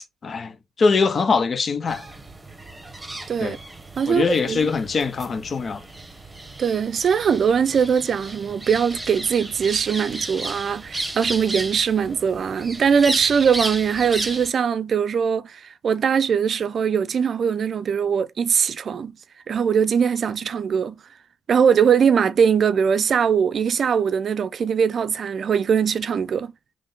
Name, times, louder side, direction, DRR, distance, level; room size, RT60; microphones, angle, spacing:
voice 1, 0.2-2.0 3.4-3.6 4.1-5.8, left 4 dB, 50° left, 0.6 m, -22 dB
sound 1, 1.9-14.5, right 2 dB, 20° right, 1.1 m, -34 dB
voice 2, 4.0-4.7 6.6-19.1 19.5-21.0 21.5-26.5, right 7 dB, 60° right, 0.4 m, -21 dB
3.6 x 3.1 x 3.7 m
supercardioid pair, 60°, 0 cm